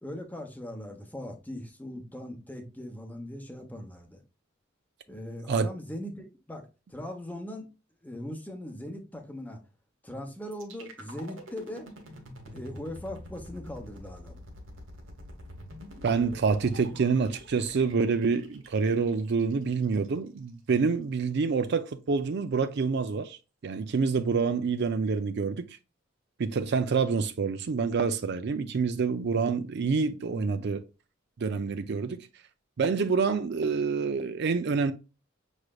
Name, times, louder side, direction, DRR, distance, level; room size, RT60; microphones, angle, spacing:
voice 1, 0.0-4.2 5.1-7.7 8.0-9.6 10.0-11.9 12.4-14.4 30.3-30.7, left 1 dB, 10° left, 0.9 m, -40 dB
sound 1, 10.5-20.5, equal, 80° right, 1.3 m, -47 dB
voice 2, 16.0-25.7 26.4-30.8 31.4-32.3 32.8-34.9, right 5 dB, 60° right, 0.4 m, -27 dB
6.2 x 3.2 x 2.3 m
head